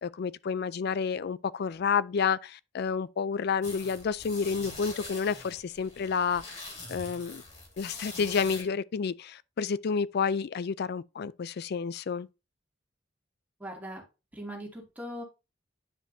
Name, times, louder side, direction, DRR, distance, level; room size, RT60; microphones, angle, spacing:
voice 1, 0.0-7.4 7.8-12.3, left 6 dB, 60° left, 0.4 m, -30 dB
sound 1, 3.6-8.6, left 3 dB, 40° left, 2.9 m, -43 dB
voice 2, 13.6-14.0 14.3-15.2, equal, 10° right, 2.3 m, -40 dB
9.9 x 5.1 x 2.7 m
head